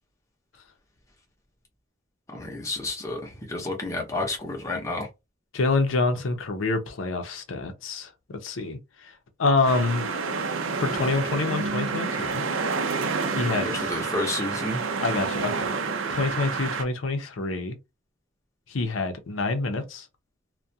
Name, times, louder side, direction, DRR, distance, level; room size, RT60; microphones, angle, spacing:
voice 1, 2.3-5.1 13.6-14.8, left 2 dB, 15° left, 0.6 m, -30 dB
voice 2, 5.5-8.1 8.4-9.1 9.4-10.1 10.8-12.4 13.4-13.9 15.0-15.7 16.1-17.8 18.7-20.1, left 3 dB, 80° left, 0.5 m, -26 dB
sound 1, 9.6-16.8, right 4 dB, 85° right, 0.5 m, -29 dB
2.3 x 2.1 x 2.7 m
head